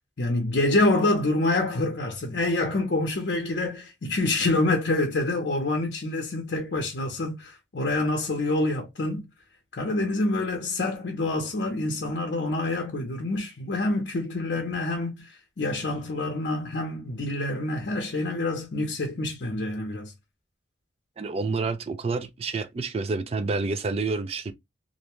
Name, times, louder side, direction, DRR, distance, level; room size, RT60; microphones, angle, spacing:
voice 1, 0.2-9.3 9.7-20.1, left 2 dB, 65° left, 0.6 m, -27 dB
voice 2, 21.2-24.5, right 3 dB, 35° right, 0.3 m, -28 dB
2.6 x 2.1 x 2.9 m
head